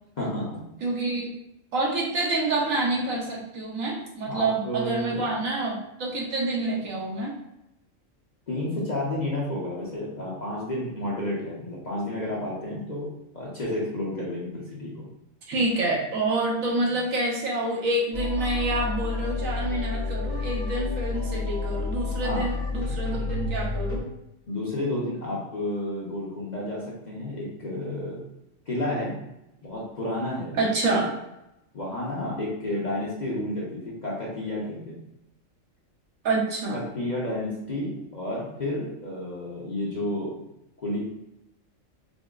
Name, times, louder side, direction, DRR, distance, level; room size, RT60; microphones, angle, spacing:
voice 1, 0.2-0.7 4.3-5.2 8.5-13.1 13.3-15.1 16.8-16.9 22.2-22.5 24.5-28.2 28.7-29.1 29.6-30.6 31.7-35.0 36.7-40.3 40.8-41.0, left 1 dB, 40° left, -5 dB, 0.7 m, -31 dB
voice 2, 0.8-1.3 1.7-7.3 15.5-24.0 30.5-31.1 36.2-36.8, right 2 dB, 80° right, -3 dB, 1.3 m, -27 dB
sound 1, 18.1-24.0, left 3 dB, 70° left, 1.7 m, -30 dB
5.1 x 2.0 x 2.4 m, 0.86 s
omnidirectional pair, 1.4 m